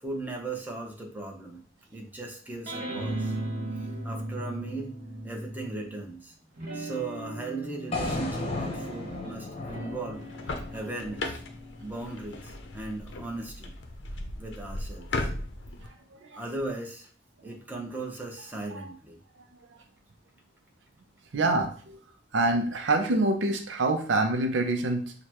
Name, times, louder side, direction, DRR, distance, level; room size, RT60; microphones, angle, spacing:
voice 1, 0.0-1.6 1.9-3.4 4.0-4.9 5.2-6.3 6.7-11.4 11.8-13.7 14.4-15.3 16.3-17.1 17.4-19.2, right 2 dB, 10° right, -1 dB, 0.8 m, -37 dB
sound 1, 2.7-6.0 6.6-13.3, right 1 dB, 50° right, 1.8 m, -38 dB
sound 2, 7.9-12.0, left 2 dB, 30° left, 0.9 m, -35 dB
sound 3, 10.2-15.9, left 2 dB, 70° left, 0.6 m, -37 dB
voice 2, 16.1-16.4 18.7-18.9 21.3-22.0 22.3-25.1, right 2 dB, 70° right, 5 dB, 0.5 m, -26 dB
6.5 x 2.2 x 2.9 m, 0.41 s
head